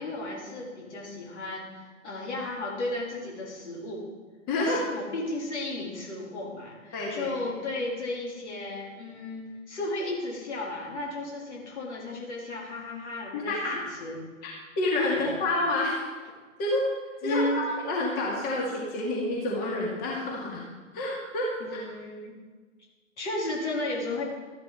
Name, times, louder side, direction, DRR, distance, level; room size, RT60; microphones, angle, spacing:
voice 1, 0.0-4.1 4.6-14.2 15.1-15.3 17.2-17.7 21.6-22.4 23.2-24.2, left 2 dB, 60° left, -2 dB, 3.5 m, -34 dB
voice 2, 4.5-4.8 6.9-7.3 13.3-13.8 14.4-16.1 16.6-16.9 17.2-20.6 20.9-21.9, left 2 dB, 25° left, -3 dB, 2.2 m, -28 dB
13.0 x 11.0 x 4.0 m, 1.4 s
figure-of-eight pair, 120°, 39 cm